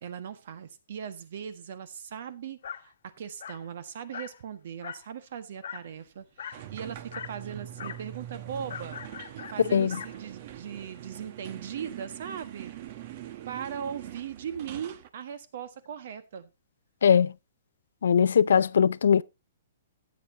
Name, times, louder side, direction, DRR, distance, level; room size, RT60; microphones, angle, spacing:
voice 1, 0.0-9.0 9.5-12.7 13.5-16.5, right 8 dB, 55° right, 1.5 m, -39 dB
Dog, 2.6-2.9 3.4-3.7 4.1-4.4 4.8-5.1 5.6-5.9 6.4-6.7 7.1-7.4 7.8-8.1 8.7-10.2, left 8 dB, 65° left, 1.3 m, -41 dB
sound 1, 6.5-15.1, right 12 dB, 40° right, 1.0 m, -43 dB
voice 2, 17.0-17.3 18.0-19.2, left 7 dB, 85° left, 0.5 m, -20 dB
15.5 x 8.7 x 2.9 m
hypercardioid pair, 165°, 0 cm